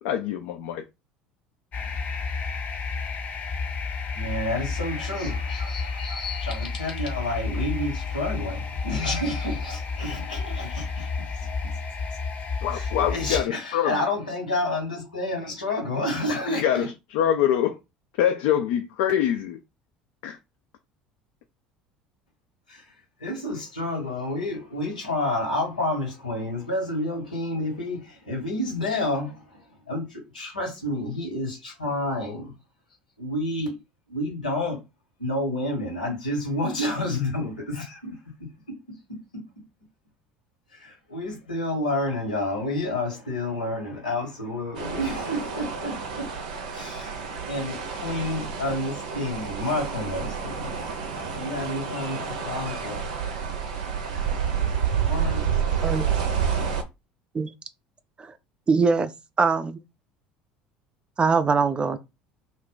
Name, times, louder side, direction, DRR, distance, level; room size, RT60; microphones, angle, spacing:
voice 1, 0.0-0.8 12.6-14.0 16.3-17.8 18.2-19.6 20.2-20.4, left 10 dB, 65° left, 0.4 m, -25 dB
sound 1, 1.7-13.4, left 4 dB, 40° left, 0.7 m, -31 dB
voice 2, 4.1-11.5 12.7-16.9 22.7-22.9 23.2-32.5 33.2-33.7 34.1-34.8 35.2-38.8 39.1-39.4 40.7-46.3 46.7-47.2 47.5-50.8 51.4-53.0 55.0-55.6, left 1 dB, 90° left, 1.2 m, -30 dB
sound 2, 44.7-56.8, right 7 dB, 75° right, 0.6 m, -29 dB
voice 3, 58.7-59.1 59.4-59.8 61.2-62.0, right 4 dB, 25° right, 0.4 m, -22 dB
2.5 x 2.2 x 3.8 m
hypercardioid pair, 65°, 4 cm